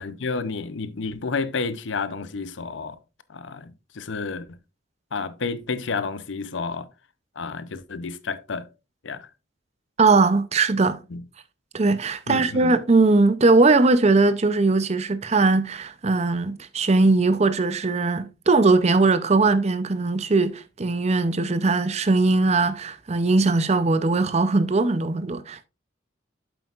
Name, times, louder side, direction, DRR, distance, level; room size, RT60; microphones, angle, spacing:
voice 1, 0.0-3.0 3.3-4.6 5.1-6.9 7.4-8.7 9.0-9.3 11.1-11.2 12.3-12.8, left 4 dB, 75° left, 0.6 m, -30 dB
voice 2, 10.0-11.0 11.7-25.6, right 3 dB, 35° right, 0.5 m, -20 dB
8.2 x 7.7 x 2.4 m
head